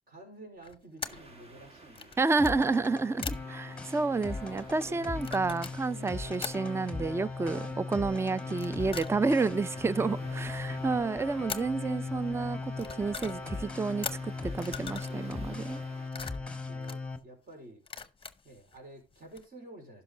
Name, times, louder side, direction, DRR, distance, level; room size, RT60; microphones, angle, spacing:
voice 1, 0.1-2.3 3.9-4.0 4.8-5.5 5.9-6.3 7.5-7.8 10.1-10.9 13.2-13.6 16.1-17.8 18.4-20.0, right 1 dB, 50° right, 4.6 m, -51 dB
sound 1, 0.6-1.3 1.9-2.6 3.2-3.5 5.1-6.5 8.5-9.5 11.5-11.8 12.5-13.5 14.0-15.2 15.7-17.2 17.8-18.8 19.1-19.4, left 6 dB, 25° left, 0.8 m, -41 dB
sound 2, 1.0-16.1, right 2 dB, 30° right, 1.9 m, -54 dB
voice 2, 2.2-15.8, right 3 dB, 15° right, 0.4 m, -30 dB
sound 3, 2.4-17.2, left 3 dB, 5° left, 1.4 m, -38 dB
11.5 x 5.7 x 3.8 m
cardioid pair, 90°, 20 cm